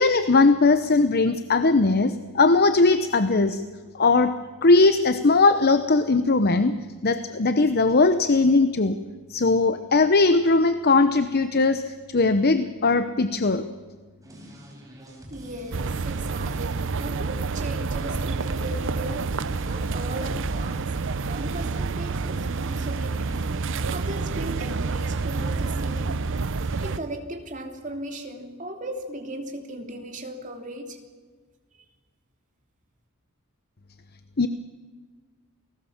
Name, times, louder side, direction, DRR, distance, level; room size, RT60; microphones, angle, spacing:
voice 1, 0.0-3.6 3.9-9.0 9.3-13.7 34.4-34.5, left 3 dB, 45° left, 11 dB, 0.9 m, -20 dB
sound 1, 14.2-26.9, equal, 15° right, 5.5 m, -43 dB
voice 2, 15.3-19.3 19.7-20.9 21.2-23.5 23.9-26.3 26.6-31.0, right 1 dB, 35° right, 4 dB, 3.1 m, -37 dB
sound 2, 15.7-27.0, right 4 dB, 60° right, 0.7 m, -28 dB
29.0 x 19.5 x 7.3 m, 1.5 s
head